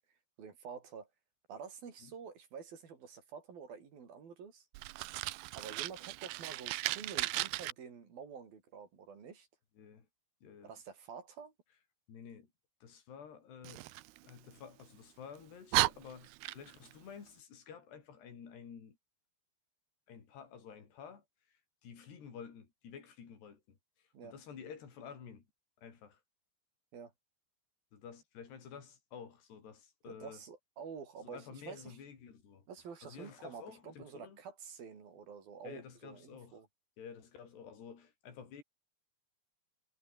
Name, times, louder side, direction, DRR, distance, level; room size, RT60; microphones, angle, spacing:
voice 1, 0.4-1.1 1.5-4.7 5.5-9.5 10.6-11.5 24.1-24.3 26.9-27.1 30.1-32.0 32.7-36.7, right 6 dB, 60° right, 5.6 m, -49 dB
Fire, 4.7-7.7 13.6-14.9 15.4-15.5 15.7-16.9, right 19 dB, 80° right, 2.6 m, -36 dB
voice 2, 9.8-10.1 10.4-10.7 12.1-12.5 12.8-13.9 14.2-19.0 20.1-25.4 25.8-26.2 27.9-30.4 31.2-32.7 33.0-34.4 35.6-36.6 37.0-38.6, left 7 dB, 85° left, 6.5 m, -51 dB
omnidirectional pair, 4.7 m